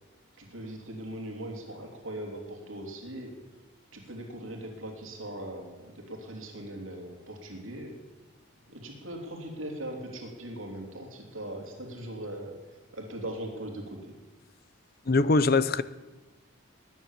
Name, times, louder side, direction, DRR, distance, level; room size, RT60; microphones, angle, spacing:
voice 1, 0.4-3.3 3.9-7.9 8.7-12.6 12.9-14.0, right 1 dB, 80° right, 3.2 m, -40 dB
voice 2, 15.1-15.8, left 3 dB, 45° left, 0.6 m, -22 dB
20.0 x 10.0 x 7.3 m
head